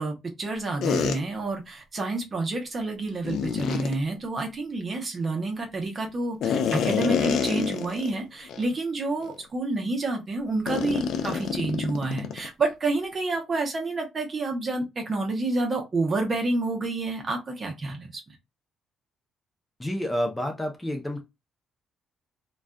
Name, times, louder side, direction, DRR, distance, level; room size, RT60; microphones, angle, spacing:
voice 1, 0.0-18.2, right 2 dB, 40° right, 0.8 m, -29 dB
sound 1, 0.8-1.2 3.2-3.9 6.4-8.1 8.5-8.6 9.2-9.4 10.7-12.5, left 7 dB, 75° left, 0.3 m, -27 dB
voice 2, 19.8-21.2, equal, 10° left, 0.6 m, -29 dB
2.4 x 2.3 x 2.2 m
cardioid pair, 90°, 0 cm